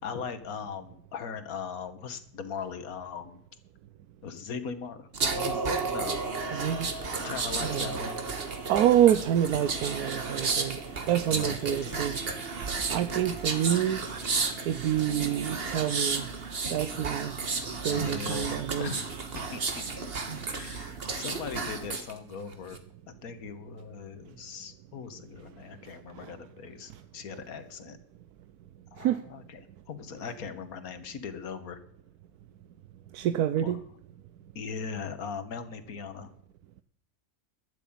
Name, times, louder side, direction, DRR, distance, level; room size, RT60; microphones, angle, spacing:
voice 1, 0.0-3.4 4.2-6.3 7.2-8.2 10.6-10.7 11.3-12.1 17.9-19.8 20.5-22.8 23.1-28.0 28.9-31.8 33.6-33.8 34.5-36.3, left 6 dB, 70° left, 1.7 m, -39 dB
sound 1, 5.1-22.1 22.5-22.8, right 4 dB, 40° right, 1.5 m, -33 dB
voice 2, 6.5-6.9 7.7-7.9 8.7-10.8 11.1-12.2 12.9-14.0 14.7-16.2 16.7-17.3 17.8-18.9 26.2-26.3 29.0-29.2 33.1-33.8, right 11 dB, 85° right, 1.2 m, -27 dB
12.5 x 7.0 x 8.6 m
omnidirectional pair, 1.6 m